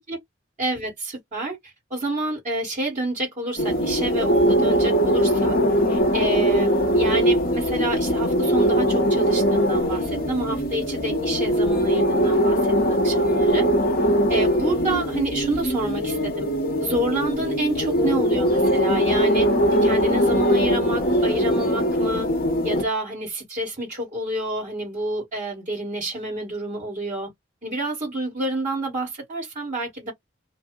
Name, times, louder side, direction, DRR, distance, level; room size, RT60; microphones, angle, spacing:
voice 1, 0.6-5.6 5.9-13.7 14.3-16.5 16.8-19.5 19.8-22.3 22.6-27.3 27.6-30.1, right 1 dB, 40° right, 1.5 m, -29 dB
sound 1, 3.6-22.8, equal, 55° left, 0.8 m, -21 dB
2.6 x 2.1 x 3.6 m
head